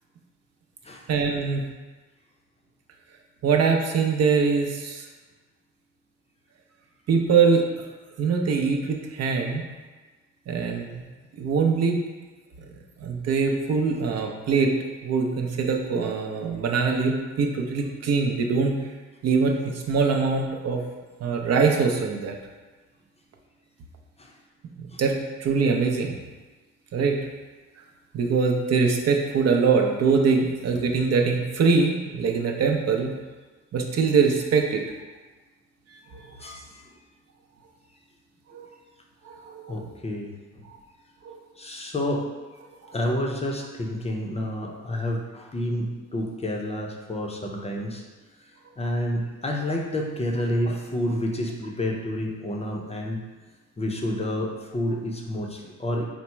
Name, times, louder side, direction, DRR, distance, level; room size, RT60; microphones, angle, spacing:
voice 1, 1.1-1.6 3.4-5.0 7.1-7.6 8.2-9.6 10.5-11.0 11.3-12.0 13.0-14.8 15.0-18.7 19.2-20.8 21.2-22.4 25.0-26.2 26.9-27.2 28.1-33.1 33.7-34.8 36.1-36.3 38.5-38.7 39.2-39.7 40.7-40.8 41.2-41.4 42.8-42.9, right 5 dB, 55° right, 2 dB, 0.6 m, -23 dB
voice 2, 36.4-36.8 39.7-40.7 41.6-42.3 42.9-48.0 48.8-53.2 53.8-56.1, left 1 dB, 20° left, 0 dB, 0.5 m, -29 dB
4.2 x 2.0 x 4.4 m, 1.3 s
cardioid pair, 90°, 30 cm